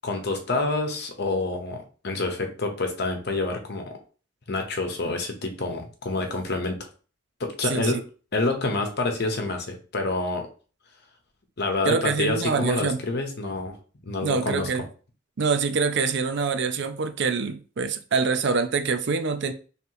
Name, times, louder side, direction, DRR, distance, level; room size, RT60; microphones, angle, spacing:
voice 1, 0.0-4.0 4.5-6.8 7.4-8.0 8.3-10.5 11.6-13.7 14.0-14.7, left 2 dB, 60° left, 4 dB, 1.0 m, -27 dB
voice 2, 7.6-8.0 11.9-13.0 14.2-14.9 15.4-19.5, right 5 dB, 65° right, 9 dB, 0.5 m, -25 dB
3.3 x 3.0 x 4.6 m, 0.38 s
head